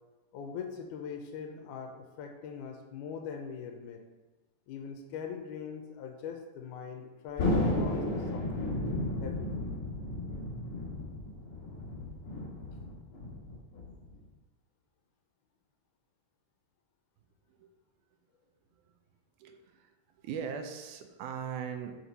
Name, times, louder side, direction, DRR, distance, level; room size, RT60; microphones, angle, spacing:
voice 1, 0.3-4.1 4.7-8.8 9.2-9.5, left 6 dB, 90° left, 4 dB, 2.1 m, -42 dB
Thunder, 7.4-14.2, left 2 dB, 60° left, 1.6 m, -33 dB
voice 2, 19.4-22.0, right 7 dB, 85° right, 6 dB, 2.1 m, -40 dB
6.0 x 5.9 x 4.1 m, 1.2 s
omnidirectional pair, 3.6 m